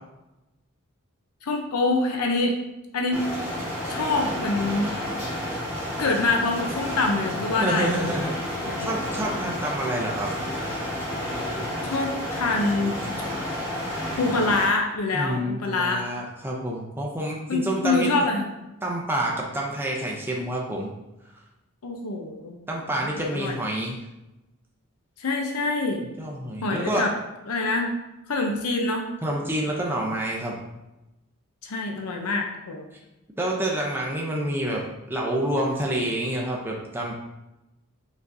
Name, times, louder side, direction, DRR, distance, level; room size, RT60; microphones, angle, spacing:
voice 1, 1.4-2.6 2.9-3.3 3.9-4.9 6.0-8.3 8.7-9.0 11.8-13.0 14.2-16.0 17.5-18.5 21.8-22.6 23.2-23.6 25.2-26.0 26.6-27.1 27.5-27.9 28.3-29.1 31.6-32.8, left 3 dB, 80° left, 2 dB, 0.6 m, -25 dB
sound 1, 3.1-14.7, left 1 dB, 10° left, 1.2 m, -31 dB
voice 2, 7.6-8.4 8.8-10.3 15.1-18.1 18.8-20.9 22.7-24.0 26.2-27.1 29.2-30.6 33.4-34.8 35.1-37.1, right 1 dB, 10° right, -2 dB, 0.5 m, -28 dB
5.2 x 3.9 x 2.6 m, 0.98 s
head